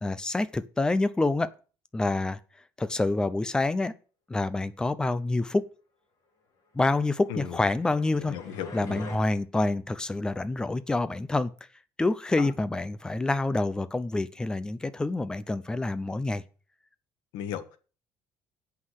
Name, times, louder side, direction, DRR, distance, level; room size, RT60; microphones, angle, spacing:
voice 1, 0.0-1.5 1.9-2.4 2.8-3.9 4.3-5.6 6.7-8.3 8.7-11.5 12.0-16.4, left 2 dB, 10° left, 0.7 m, -27 dB
sound 1, 7.2-9.2, left 3 dB, 50° left, 4.2 m, -43 dB
voice 2, 8.3-8.7 12.4-12.5 17.3-17.8, left 9 dB, 80° left, 1.5 m, -35 dB
8.6 x 5.8 x 7.7 m
cardioid pair, 145°, 8 cm